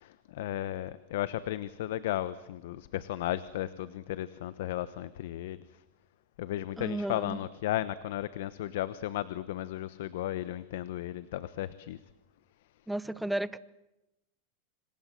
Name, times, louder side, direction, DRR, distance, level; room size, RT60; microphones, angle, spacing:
voice 1, 0.0-5.8 6.4-12.0, left 13 dB, 70° left, 15 dB, 1.1 m, -35 dB
voice 2, 6.8-7.4 12.9-13.6, right 1 dB, 5° right, 17 dB, 0.9 m, -33 dB
27.0 x 25.5 x 7.7 m, 0.92 s
supercardioid pair, 125°, 0 cm